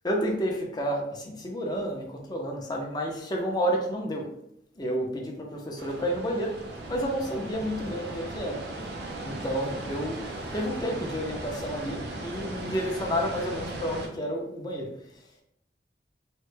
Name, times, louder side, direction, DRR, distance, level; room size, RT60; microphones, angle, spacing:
voice 1, 0.0-4.3 4.8-6.5 6.9-8.6 9.2-10.2 10.5-14.9, equal, 25° left, -1 dB, 0.6 m, -30 dB
sound 1, 5.8-14.1, right 2 dB, 65° right, 0.5 m, -37 dB
3.1 x 2.1 x 3.2 m, 0.76 s
head